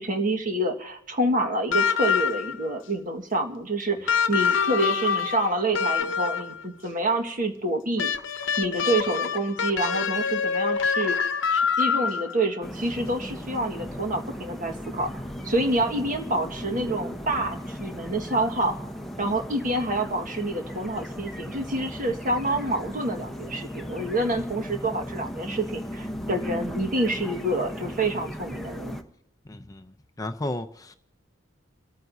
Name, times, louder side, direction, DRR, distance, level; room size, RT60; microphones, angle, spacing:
voice 1, 0.0-8.1 8.6-11.2 11.5-15.1 15.4-18.8 19.2-29.0, right 1 dB, 45° right, 1.7 m, -27 dB
sound 1, 1.7-2.7 4.1-6.6 8.0-12.4 13.8-13.9, left 6 dB, 70° left, 0.8 m, -25 dB
sound 2, 12.6-29.0, equal, ahead, 1.0 m, -36 dB
voice 2, 29.5-29.9 30.2-30.9, left 1 dB, 20° left, 0.6 m, -33 dB
29.0 x 14.0 x 2.7 m
head